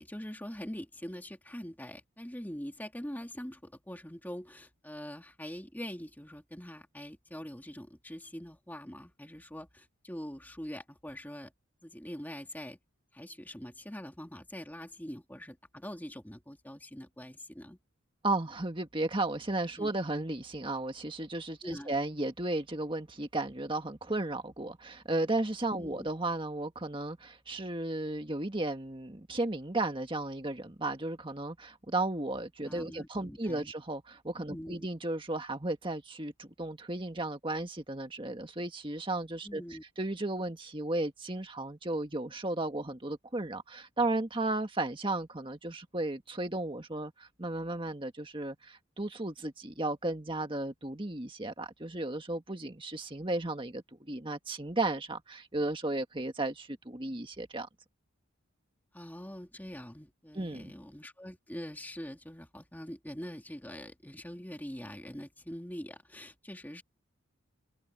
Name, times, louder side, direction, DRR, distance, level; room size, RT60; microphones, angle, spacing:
voice 1, 0.0-11.5 11.8-12.8 13.1-17.8 19.8-19.9 21.6-21.9 25.8-26.1 32.6-33.7 34.5-34.9 39.4-39.8 58.9-66.8, equal, 10° left, 2.3 m, -44 dB
voice 2, 18.2-57.7 60.3-60.7, right 2 dB, 25° right, 1.7 m, -34 dB
open air
head